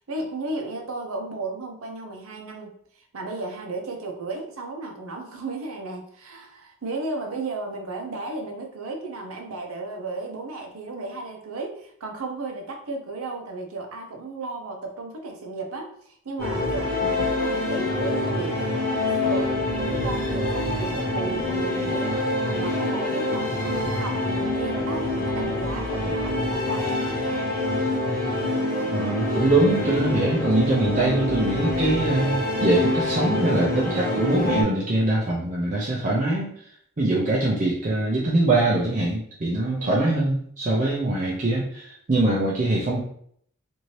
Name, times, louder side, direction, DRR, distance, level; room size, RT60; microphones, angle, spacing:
voice 1, 0.1-19.6 19.8-22.2 22.4-27.5 39.6-40.2, right 3 dB, 80° right, 2 dB, 0.6 m, -34 dB
sound 1, 16.4-34.6, left 1 dB, 40° left, 1.1 m, -26 dB
voice 2, 28.9-36.5 37.0-43.0, right 2 dB, 35° right, -5 dB, 0.5 m, -23 dB
2.7 x 2.6 x 3.1 m, 0.65 s
head